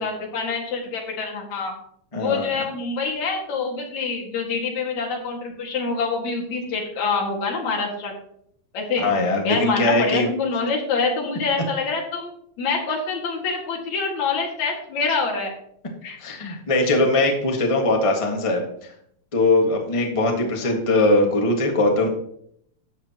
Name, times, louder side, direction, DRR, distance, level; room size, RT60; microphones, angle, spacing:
voice 1, 0.0-1.7 2.1-8.1 8.7-12.3 12.6-15.5 16.0-16.2, left 4 dB, 70° left, -1 dB, 3.2 m, -26 dB
voice 2, 2.1-2.5 9.0-10.3 16.2-18.6 19.3-22.1, left 2 dB, 25° left, 1 dB, 0.7 m, -20 dB
13.0 x 8.6 x 2.9 m, 0.70 s
omnidirectional pair, 3.5 m